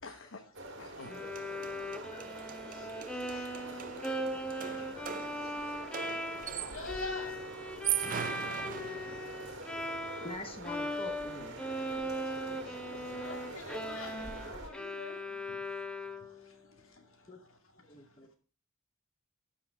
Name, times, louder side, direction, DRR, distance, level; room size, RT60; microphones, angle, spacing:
voice 1, 0.0-0.5 0.8-1.4 5.2-5.7 10.9-11.3, left 3 dB, 65° left, 1.1 m, -53 dB
sound 1, 0.5-14.7, right 2 dB, 60° right, 1.9 m, -46 dB
Bowed string instrument, 1.0-10.4 10.6-16.5, equal, 5° left, 0.8 m, -39 dB
sound 2, 1.0-1.1 1.4-7.0 7.7-9.5, right 10 dB, 40° right, 0.5 m, -40 dB
voice 2, 3.1-3.6 5.4-5.5 6.7-7.4 8.7-8.8 12.1-12.2 12.7-12.8 13.1-15.6, left 2 dB, 85° left, 2.4 m, -45 dB
voice 3, 10.2-11.6 17.3-17.4 17.9-18.3, left 2 dB, 30° left, 1.1 m, -46 dB
12.5 x 5.6 x 4.8 m
head